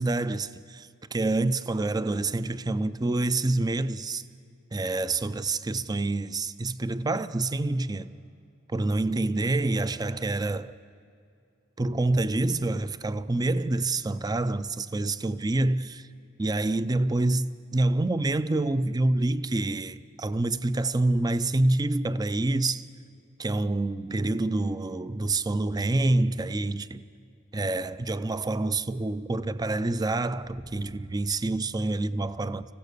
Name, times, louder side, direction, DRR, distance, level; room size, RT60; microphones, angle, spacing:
voice 1, 0.0-4.2 4.7-8.1 8.7-10.7 11.8-16.1 16.4-22.9 23.4-27.0 27.5-32.6, right 2 dB, 20° right, 0.5 m, -27 dB
26.5 x 15.5 x 6.7 m
head